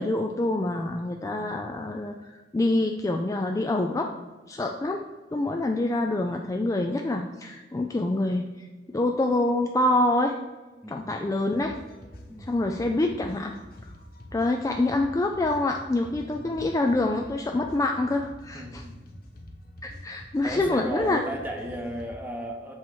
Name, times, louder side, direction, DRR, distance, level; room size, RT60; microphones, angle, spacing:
voice 1, 0.0-4.1 4.5-5.0 5.3-8.5 8.9-10.4 10.9-11.7 12.4-13.6 14.3-18.8 19.8-21.2, left 2 dB, 20° left, 3 dB, 0.3 m, -26 dB
voice 2, 10.8-11.2 12.3-12.6 16.1-16.6 18.5-19.0 20.4-22.7, right 1 dB, 10° right, 2 dB, 0.8 m, -36 dB
sound 1, 11.5-22.1, left 1 dB, 60° left, 0.8 m, -46 dB
7.5 x 3.1 x 4.3 m, 1.2 s
head